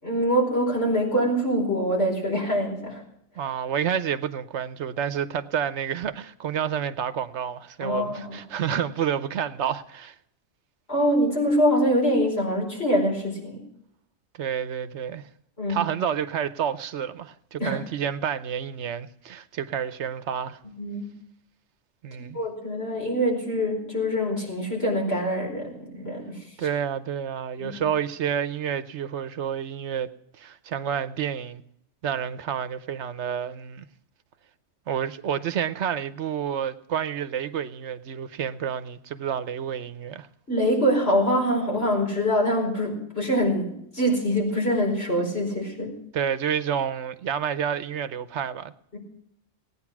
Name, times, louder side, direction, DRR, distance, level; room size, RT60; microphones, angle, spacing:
voice 1, 0.0-3.0 7.8-8.4 10.9-13.6 15.6-15.8 17.6-17.8 20.8-21.1 22.3-26.7 27.6-27.8 40.5-46.0 48.9-49.0, equal, 60° left, 5.1 m, -24 dB
voice 2, 3.4-10.2 14.4-15.3 15.7-20.6 22.0-22.4 26.6-30.1 30.4-31.6 32.0-33.9 34.9-40.3 46.1-48.7, right 8 dB, 75° right, 1.0 m, -29 dB
17.5 x 9.6 x 6.0 m
omnidirectional pair, 1.2 m